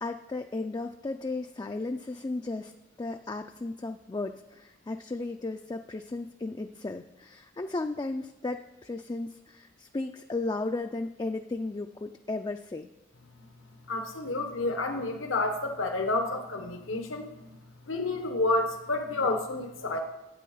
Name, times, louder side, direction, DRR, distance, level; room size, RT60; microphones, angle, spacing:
voice 1, 0.0-2.7 3.0-12.9, left 2 dB, 20° left, 6 dB, 0.3 m, -35 dB
voice 2, 13.9-17.6 17.8-20.0, left 2 dB, 80° left, 5 dB, 1.1 m, -30 dB
11.5 x 8.6 x 5.5 m, 0.98 s
head